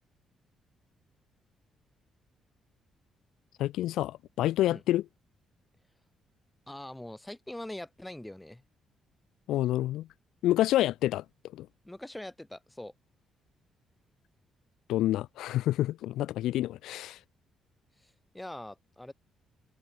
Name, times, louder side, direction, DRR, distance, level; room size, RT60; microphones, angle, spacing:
voice 1, 3.6-5.0 9.5-10.1 10.4-11.2 11.5-11.7 14.9-17.2, left 14 dB, 85° left, 0.8 m, -28 dB
voice 2, 6.7-8.6 11.8-12.9 18.0-19.1, left 1 dB, 10° left, 6.4 m, -43 dB
cardioid pair, 90°, 0 cm